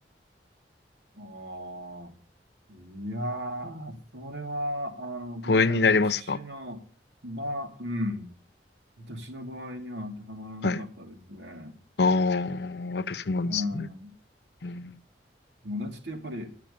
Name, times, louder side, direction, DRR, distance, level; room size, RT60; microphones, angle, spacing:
voice 1, 1.1-2.1 2.7-6.8 7.2-8.3 9.0-11.8 13.4-14.1 15.6-16.5, equal, 75° right, 2.6 m, -36 dB
voice 2, 5.5-6.4 10.6-10.8 12.0-13.9 14.6-15.0, left 4 dB, 65° left, 0.7 m, -25 dB
11.5 x 6.7 x 8.5 m
head